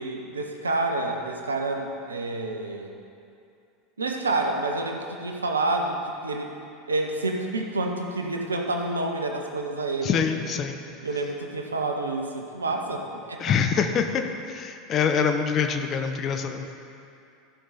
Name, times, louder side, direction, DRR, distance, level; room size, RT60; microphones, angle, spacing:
voice 1, 0.0-2.9 4.0-6.0 6.2-6.5 6.9-10.2 11.0-13.4, right 2 dB, 85° right, 3 dB, 0.8 m, -28 dB
voice 2, 10.0-10.8 13.4-16.7, left 6 dB, 40° left, 6 dB, 0.8 m, -25 dB
13.5 x 5.4 x 4.2 m, 2.6 s
hypercardioid pair, 80°, 0 cm